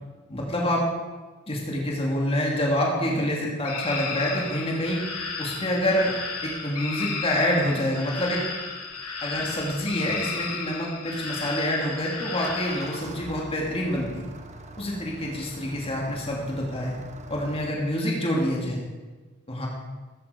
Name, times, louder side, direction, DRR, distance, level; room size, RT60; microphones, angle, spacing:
voice 1, 0.3-0.8 1.5-5.0 5.4-6.1 6.4-8.4 9.2-14.2 14.8-17.0 17.3-18.8 19.5-19.7, left 1 dB, 25° left, -2 dB, 2.5 m, -27 dB
sound 1, 3.6-12.9, left 4 dB, 75° left, 3.4 m, -34 dB
Engine starting, 12.3-17.7, right 2 dB, 30° right, 1.2 m, -42 dB
14.0 x 14.0 x 5.1 m, 1.3 s
head